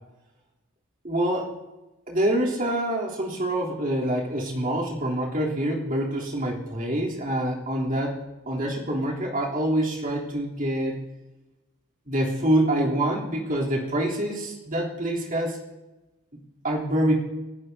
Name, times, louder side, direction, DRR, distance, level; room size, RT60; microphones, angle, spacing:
voice 1, 1.0-1.5 2.1-8.2 8.5-11.0 12.1-15.6 16.6-17.2, right 1 dB, 40° right, -4 dB, 3.3 m, -26 dB
29.0 x 11.0 x 2.8 m, 1.1 s
head